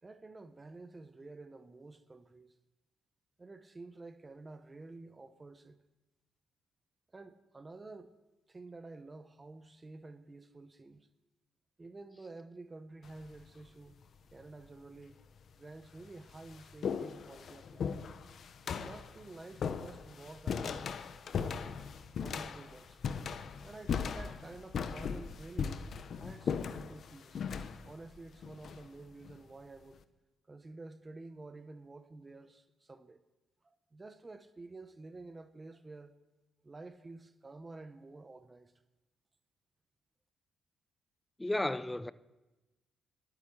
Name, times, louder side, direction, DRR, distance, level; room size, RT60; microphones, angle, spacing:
voice 1, 0.0-2.5 3.4-5.8 7.1-8.1 8.5-11.1 11.8-14.0 14.3-15.2 15.5-18.0 18.6-20.9 21.2-21.8 22.1-23.0 23.6-25.8 26.1-27.4 27.8-30.0 30.5-33.2 33.6-36.2 36.6-38.7, right 3 dB, 25° right, 0.9 m, -50 dB
sound 1, 13.0-13.5 14.4-14.5 15.4-15.5 15.8-29.4, left 6 dB, 55° left, 0.8 m, -39 dB
voice 2, 41.4-42.1, left 1 dB, 10° left, 0.5 m, -33 dB
11.5 x 8.9 x 10.0 m
cardioid pair, 90°, 0 cm